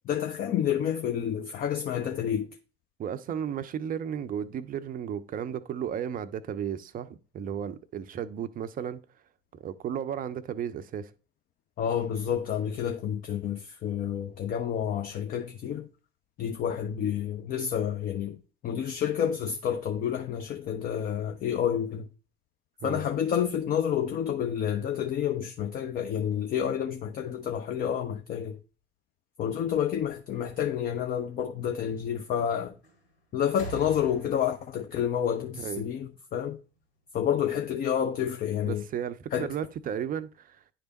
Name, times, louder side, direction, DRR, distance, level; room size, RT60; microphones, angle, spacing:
voice 1, 0.0-2.6 11.8-15.9 16.4-18.4 18.6-22.1 22.8-28.6 29.4-32.8 33.3-36.6 37.1-38.8 39.3-39.5, left 9 dB, 30° left, 0.5 m, -29 dB
voice 2, 3.0-9.0 9.6-11.1 22.8-23.0 35.6-35.9 38.6-40.6, right 8 dB, 25° right, 0.6 m, -34 dB
sound 1, 32.8-33.1 33.4-36.2 37.3-37.4, right 3 dB, 85° left, 2.4 m, -45 dB
10.0 x 3.4 x 4.0 m
figure-of-eight pair, 70°, 32 cm